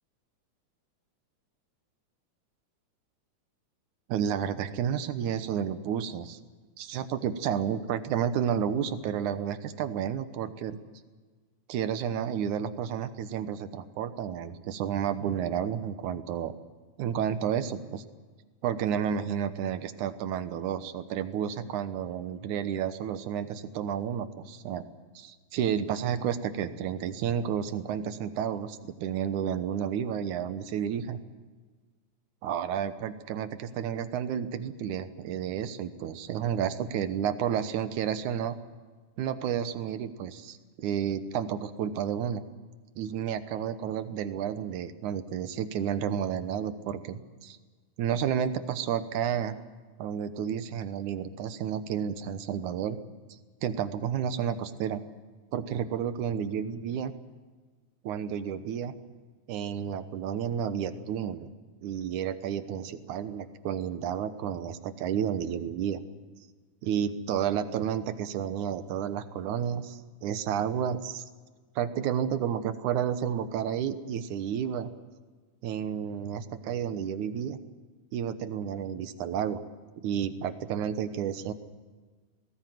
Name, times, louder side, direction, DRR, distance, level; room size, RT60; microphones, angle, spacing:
voice 1, 4.1-6.4 6.8-10.8 11.7-16.5 17.0-18.0 18.6-24.9 25.2-31.2 32.4-38.5 39.2-42.4 43.0-47.6 48.0-49.6 50.0-53.0 53.6-55.0 55.5-57.1 58.0-58.9 59.5-61.5 61.8-66.0 66.8-71.2 71.8-74.9 75.6-77.6 78.1-79.6 80.0-81.5, right 8 dB, 80° right, 11 dB, 2.5 m, -31 dB
20.5 x 18.5 x 9.2 m, 1.4 s
omnidirectional pair, 3.5 m